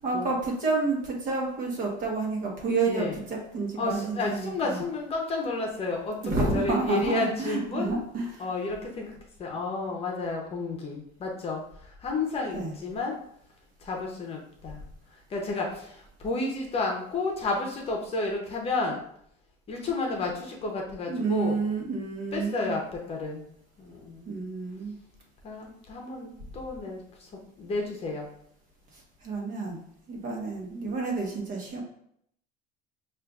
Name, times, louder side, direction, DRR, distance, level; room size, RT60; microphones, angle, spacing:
voice 1, 0.0-4.8 6.2-8.5 12.5-12.7 21.1-22.8 24.3-25.0 28.9-29.8 30.1-31.8, right 3 dB, 45° right, -1 dB, 1.1 m, -29 dB
voice 2, 3.8-8.0 8.4-9.1 9.4-13.2 13.8-14.8 15.3-19.0 19.7-21.6 22.3-23.4 23.8-24.4 25.4-27.3 27.6-28.3, left 3 dB, 35° left, 0 dB, 0.7 m, -31 dB
6.4 x 2.5 x 2.4 m, 0.71 s
cardioid pair, 145°, 18 cm